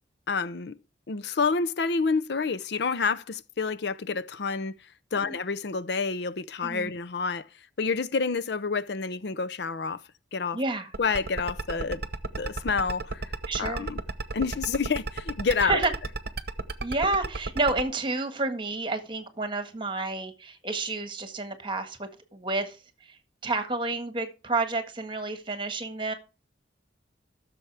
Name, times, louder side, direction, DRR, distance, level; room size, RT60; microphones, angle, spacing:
voice 1, 0.3-0.8 1.1-4.7 5.1-7.5 7.8-10.0 10.3-10.6 11.0-12.0 12.4-13.3 13.6-14.0 14.3-15.8, left 4 dB, 60° left, 0.6 m, -28 dB
voice 2, 10.5-10.9 13.5-13.9 15.6-15.9 16.8-22.8 23.1-23.2 23.4-26.1, right 3 dB, 25° right, 1.6 m, -30 dB
sound 1, 10.9-17.8, right 3 dB, 55° right, 0.9 m, -32 dB
15.0 x 7.0 x 3.4 m
head